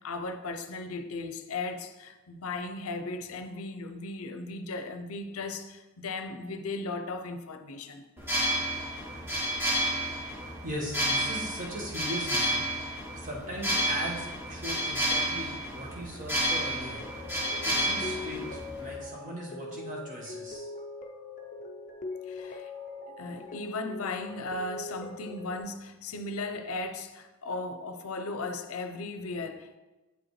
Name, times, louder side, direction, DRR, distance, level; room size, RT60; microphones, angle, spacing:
voice 1, 0.0-8.1 22.3-22.7 23.1-29.8, left 3 dB, 80° left, 0.6 m, -37 dB
sound 1, 8.2-19.0, right 1 dB, 10° right, 1.0 m, -31 dB
voice 2, 10.6-12.6 12.9-17.0 17.6-20.7 23.3-23.4, equal, 35° right, 1.3 m, -39 dB
sound 2, 16.9-25.6, left 3 dB, 35° left, 0.5 m, -41 dB
8.0 x 5.1 x 3.1 m
head